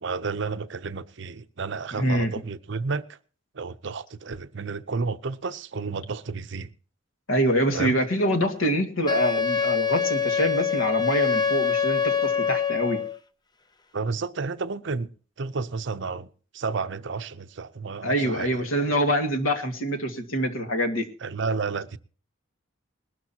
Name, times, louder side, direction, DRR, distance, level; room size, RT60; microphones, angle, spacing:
voice 1, 0.0-3.2 3.5-6.7 7.7-8.0 13.9-15.1 15.4-16.3 16.5-18.7 21.2-22.0, right 4 dB, 60° right, 0.7 m, -31 dB
voice 2, 2.0-2.3 7.3-13.0 18.0-21.1, equal, 85° left, 2.0 m, -25 dB
Wind instrument woodwind instrument, 9.1-13.2, left 7 dB, 20° left, 0.6 m, -25 dB
20.5 x 12.5 x 2.9 m
head